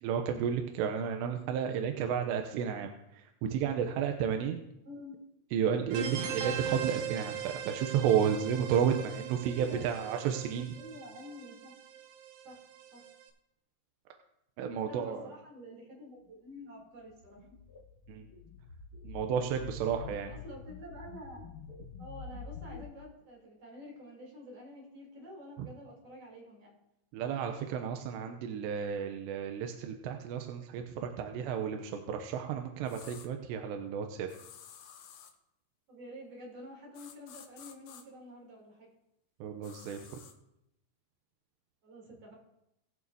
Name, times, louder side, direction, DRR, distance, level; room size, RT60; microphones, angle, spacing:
voice 1, 0.0-2.9 3.5-4.6 5.5-10.7 14.6-15.3 18.1-18.2 19.0-20.3 27.1-30.8 31.2-34.3 39.4-40.0, right 8 dB, 90° right, 4 dB, 2.9 m, -32 dB
voice 2, 4.8-5.3 9.5-9.9 10.8-11.7 12.4-12.6 12.9-13.0 14.8-17.5 20.2-21.6 22.0-26.7 35.9-38.9 41.8-42.3, equal, 35° right, -2 dB, 3.9 m, -49 dB
sound 1, 5.9-13.2, right 8 dB, 70° right, 2.2 m, -40 dB
sound 2, 17.1-22.8, left 4 dB, 40° left, 1.3 m, -47 dB
sound 3, 32.9-33.3 34.3-35.4 36.9-38.0 39.6-40.3, left 8 dB, 75° left, 3.0 m, -52 dB
21.5 x 7.2 x 2.8 m, 0.82 s
omnidirectional pair, 5.0 m